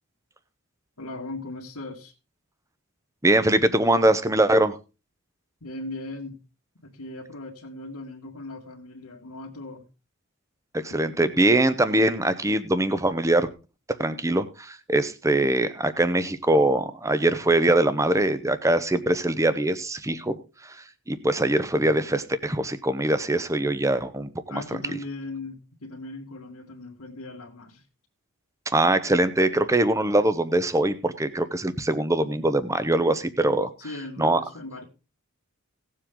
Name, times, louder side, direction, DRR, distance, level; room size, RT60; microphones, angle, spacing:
voice 1, 1.0-2.1 5.6-6.4 6.8-9.9 10.9-11.0 24.5-27.9 32.3-32.6 33.8-34.8, left 2 dB, 85° left, 2.0 m, -38 dB
voice 2, 3.2-4.8 10.7-13.5 14.0-24.6 24.9-25.0 28.7-33.7 34.2-34.4, right 1 dB, 15° right, 0.8 m, -22 dB
17.5 x 7.5 x 3.8 m
head